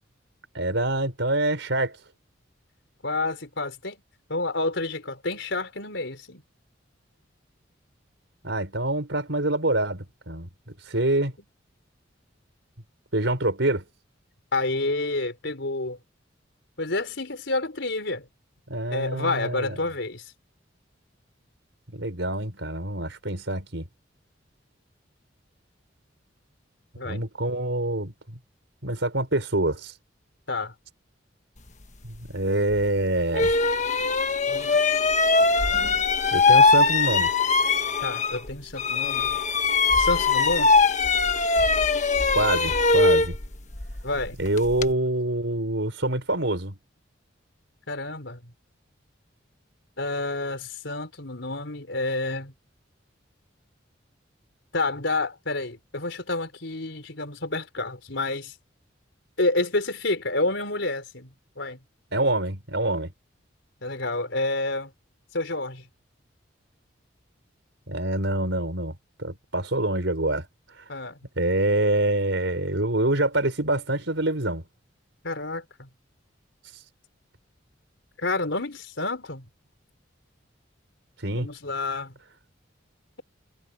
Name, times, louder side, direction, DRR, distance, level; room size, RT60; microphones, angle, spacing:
voice 1, 0.5-2.0 8.4-10.5 10.8-11.3 13.1-13.8 18.7-19.7 21.9-23.9 27.0-28.1 28.8-29.9 32.0-33.7 36.3-37.3 42.3-43.4 44.4-46.7 62.1-63.1 67.9-68.9 69.2-70.5 70.8-70.9 71.4-74.6 81.2-81.5, right 1 dB, 70° right, 4.8 m, -26 dB
voice 2, 3.0-4.0 4.3-6.4 14.5-16.0 16.8-18.3 18.9-20.3 27.0-27.2 30.5-30.7 34.5-34.8 38.0-39.3 40.0-40.7 44.0-44.4 47.9-48.4 50.0-52.5 54.7-58.5 59.4-61.3 61.6-61.8 63.8-64.9 65.3-65.9 70.9-71.2 75.2-75.9 78.2-79.4 81.4-82.1, left 2 dB, 70° left, 4.4 m, -29 dB
sound 1, 32.7-32.8 33.3-38.5 38.8-44.9, left 4 dB, 40° left, 1.4 m, -21 dB
head